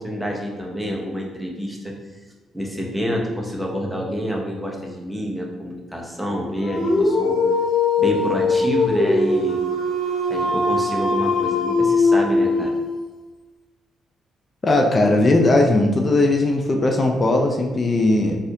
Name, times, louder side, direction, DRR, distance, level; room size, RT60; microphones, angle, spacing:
voice 1, 0.0-1.9 2.5-7.4 8.0-9.6 10.3-12.7, equal, ahead, -1 dB, 0.7 m, -28 dB
Dog, 6.6-13.0, left 3 dB, 75° left, 0.6 m, -20 dB
voice 2, 14.6-18.4, left 2 dB, 35° left, 2 dB, 0.4 m, -18 dB
4.1 x 2.5 x 2.6 m, 1.2 s
cardioid pair, 90°, 0 cm